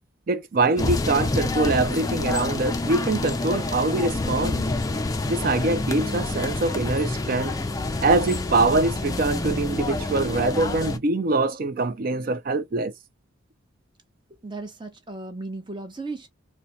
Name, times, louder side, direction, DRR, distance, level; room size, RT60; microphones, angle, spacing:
voice 1, 0.3-4.7 5.3-7.5 8.0-12.9, right 3 dB, 45° right, 0.4 m, -24 dB
sound 1, 0.8-11.0, left 2 dB, 20° left, 0.4 m, -27 dB
voice 2, 14.4-16.3, right 3 dB, 25° right, 0.8 m, -35 dB
4.0 x 2.2 x 2.6 m
head